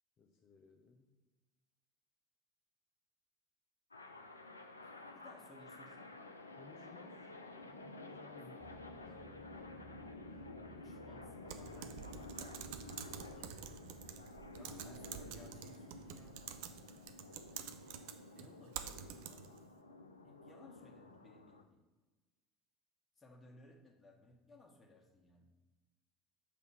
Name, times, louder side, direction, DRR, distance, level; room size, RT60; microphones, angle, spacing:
voice 1, 0.2-1.2 6.5-7.3 7.7-9.7 10.0-10.5, left 4 dB, 35° left, 2 dB, 0.6 m, -62 dB
sound 1, 3.9-21.6, left 2 dB, 80° left, 0.4 m, -52 dB
voice 2, 4.8-6.1 8.3-8.7 10.7-13.5 14.5-16.4 18.3-19.5 20.2-21.8 23.2-25.5, left 2 dB, 15° left, 0 dB, 1.4 m, -61 dB
sound 2, 8.6-14.1, right 1 dB, 10° right, 0.7 m, -59 dB
Typing, 11.5-19.6, right 9 dB, 55° right, 0.4 m, -49 dB
6.6 x 3.6 x 5.9 m, 1.2 s
figure-of-eight pair, 70°, 0 cm